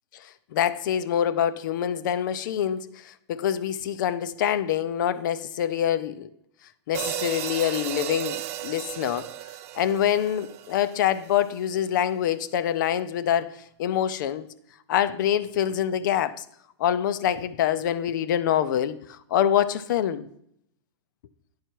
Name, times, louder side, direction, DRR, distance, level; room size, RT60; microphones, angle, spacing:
voice 1, 0.1-6.3 6.9-9.3 9.8-13.5 13.8-14.5 14.9-16.4 16.8-20.3, left 10 dB, 45° left, 0.5 m, -25 dB
sound 1, 6.9-11.3, right 14 dB, 30° right, 0.4 m, -34 dB
10.0 x 5.6 x 4.5 m
supercardioid pair, 170°, 15 cm